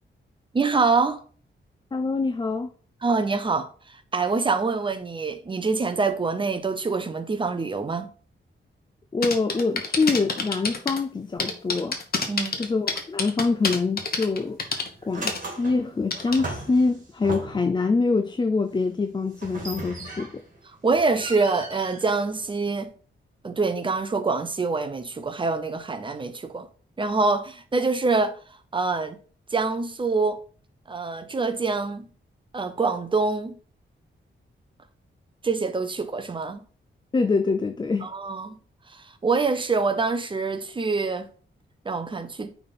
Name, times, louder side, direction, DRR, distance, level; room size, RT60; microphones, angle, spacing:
voice 1, 0.5-1.2 3.0-3.7 4.1-8.1 12.3-12.5 20.8-22.9 23.4-26.7 27.0-28.3 28.7-29.2 29.5-30.4 30.9-32.1 32.5-33.5 35.4-36.6 38.0-38.6 38.9-41.3 41.8-42.5, right 4 dB, 25° right, 0.7 m, -25 dB
voice 2, 1.9-2.7 9.1-12.0 12.6-14.6 15.0-20.3 37.1-38.1, left 4 dB, 20° left, 0.4 m, -25 dB
sound 1, 9.2-11.0 11.4-14.9 15.3-15.4 16.1-16.4, left 4 dB, 50° left, 1.1 m, -27 dB
sound 2, 14.0-14.3 14.7-17.8 19.3-20.6 20.9-22.8, right 2 dB, 40° right, 2.1 m, -38 dB
9.1 x 3.6 x 4.1 m
wide cardioid pair, 160°, 20 cm